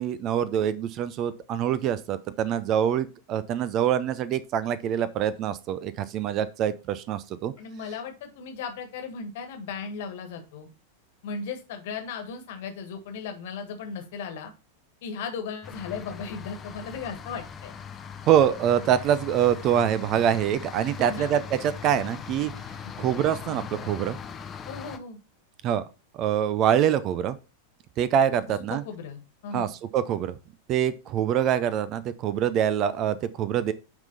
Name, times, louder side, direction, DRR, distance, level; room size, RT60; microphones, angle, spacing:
voice 1, 0.0-7.5 18.3-22.5 23.0-24.2 25.6-25.8 26.1-27.4 28.0-28.8 29.5-30.4 30.7-33.7, right 9 dB, 35° right, 0.5 m, -25 dB
voice 2, 7.6-10.7 11.2-14.5 15.0-17.7 21.0-21.4 22.8-23.1 24.7-25.2 28.7-29.7, left 5 dB, 55° left, 1.6 m, -36 dB
sound 1, 15.6-25.0, left 7 dB, 25° left, 0.7 m, -40 dB
9.0 x 3.7 x 4.0 m
figure-of-eight pair, 90°, 0 cm